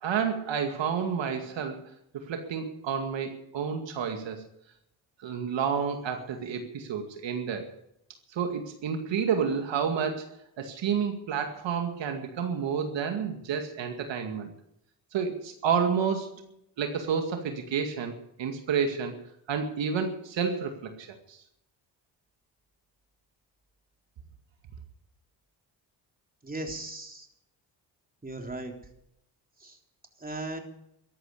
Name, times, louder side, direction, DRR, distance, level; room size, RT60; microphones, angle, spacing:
voice 1, 0.0-1.8 2.1-4.4 5.2-7.7 8.3-14.5 15.1-16.3 16.8-19.2 19.5-21.4, right 6 dB, 70° right, 5 dB, 2.3 m, -30 dB
voice 2, 26.4-27.3 28.2-28.7 29.6-29.8 30.2-30.6, right 2 dB, 20° right, 3 dB, 3.6 m, -37 dB
14.0 x 11.0 x 8.4 m, 0.78 s
supercardioid pair, 65°, 47 cm